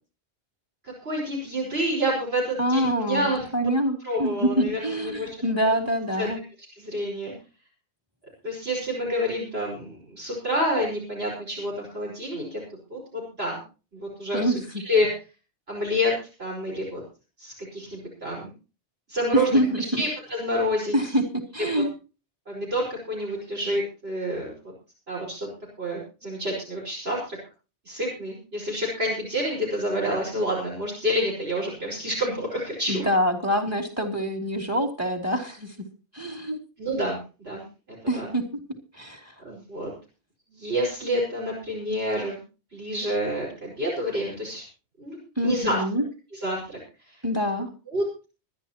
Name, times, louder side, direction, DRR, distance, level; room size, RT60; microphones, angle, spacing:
voice 1, 0.8-3.5 4.0-5.8 6.1-6.3 6.8-7.3 8.4-12.6 12.9-13.6 13.9-15.1 15.7-17.0 17.4-18.5 19.1-20.9 21.6-21.8 22.5-24.7 25.1-25.5 25.8-27.4 27.8-33.1 36.8-37.6 38.1-38.3 39.4-39.9 40.5-42.4 42.7-44.6 45.0-45.8 46.3-47.2 47.9-48.3, equal, 60° right, -4 dB, 5.5 m, -28 dB
voice 2, 2.6-6.4 14.3-14.6 19.3-20.0 20.9-21.9 32.9-35.7 36.1-36.6 38.1-38.5 39.0-39.3 45.4-46.0 47.2-47.7, equal, 15° right, 4 dB, 2.8 m, -25 dB
25.5 x 11.0 x 2.9 m, 0.34 s
omnidirectional pair, 1.2 m